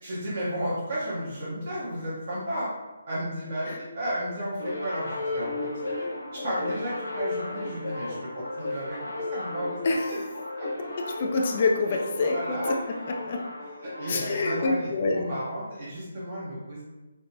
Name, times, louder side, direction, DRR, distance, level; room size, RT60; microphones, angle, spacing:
voice 1, 0.0-2.7 3.1-6.1 6.3-10.2 10.5-10.9 12.2-13.0 13.8-16.8, equal, 50° right, -7 dB, 0.9 m, -33 dB
sound 1, 4.6-14.7, left 2 dB, 80° left, 0.8 m, -35 dB
voice 2, 11.0-12.6 13.2-13.4 14.1-15.3, left 3 dB, 45° left, 2 dB, 0.3 m, -26 dB
3.3 x 2.0 x 2.7 m, 1.1 s
figure-of-eight pair, 150°, 0 cm